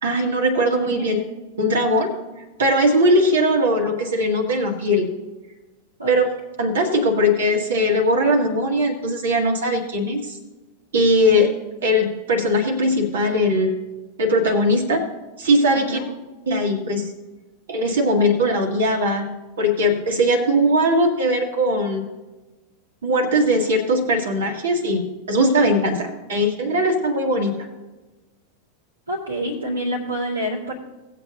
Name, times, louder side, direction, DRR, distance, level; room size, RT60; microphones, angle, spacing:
voice 1, 0.0-1.2 1.6-2.1 2.6-5.1 6.1-6.3 6.6-10.4 10.9-11.5 11.8-13.7 14.2-15.1 15.4-16.0 16.5-17.1 17.7-19.3 19.6-22.1 23.0-27.6, equal, 65° right, 3 dB, 1.9 m, -20 dB
voice 2, 15.7-16.1 29.1-30.7, equal, 85° right, -7 dB, 2.2 m, -27 dB
18.5 x 7.9 x 2.7 m, 1.1 s
figure-of-eight pair, 90°, 0 cm